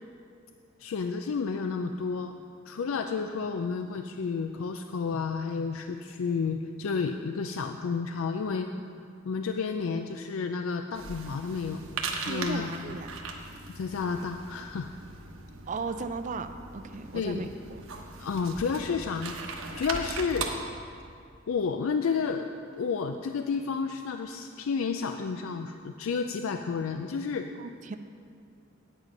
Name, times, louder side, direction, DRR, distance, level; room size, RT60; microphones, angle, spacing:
voice 1, 0.8-2.3 2.7-8.7 9.2-11.8 12.2-13.0 13.7-14.9 17.1-17.5 18.2-20.5 21.5-22.5 22.7-27.5, left 5 dB, 85° left, 6 dB, 0.4 m, -31 dB
sound 1, 10.9-20.5, right 4 dB, 85° right, 1.1 m, -39 dB
voice 2, 12.3-13.1 15.7-17.5 17.7-17.8 27.6-28.0, right 4 dB, 40° right, 9 dB, 0.4 m, -36 dB
9.0 x 9.0 x 5.3 m, 2.3 s
head